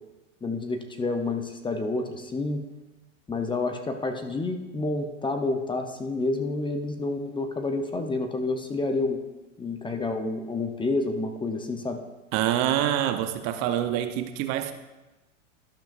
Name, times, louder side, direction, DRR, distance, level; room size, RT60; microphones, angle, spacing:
voice 1, 0.4-2.6 3.3-9.2 9.6-12.0, left 3 dB, 10° left, 5 dB, 0.8 m, -29 dB
voice 2, 12.3-14.7, right 11 dB, 45° right, 9 dB, 0.8 m, -26 dB
12.0 x 11.5 x 2.5 m, 1.1 s
hypercardioid pair, 115°, 38 cm